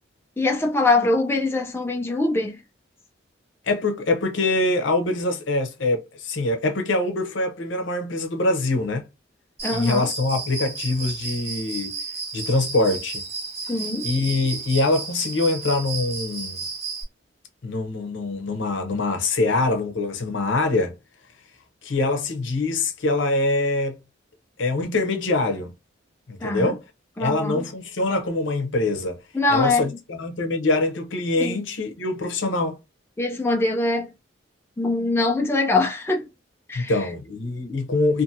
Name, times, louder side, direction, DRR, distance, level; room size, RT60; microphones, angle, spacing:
voice 1, 0.4-2.6 9.6-10.1 13.7-14.1 26.4-26.7 27.2-27.7 29.3-29.9 31.4-31.6 33.2-34.1 34.8-36.3 36.7-36.9, left 2 dB, 10° left, 0.3 m, -23 dB
voice 2, 3.7-9.1 9.7-12.0 12.3-13.2 14.0-16.6 17.6-21.0 21.8-24.0 24.6-25.7 26.3-26.8 27.2-29.2 29.5-32.8 36.7-38.2, left 2 dB, 75° left, 0.7 m, -24 dB
Cricket, 9.6-17.0, right 4 dB, 35° right, 1.5 m, -33 dB
2.6 x 2.5 x 2.6 m
head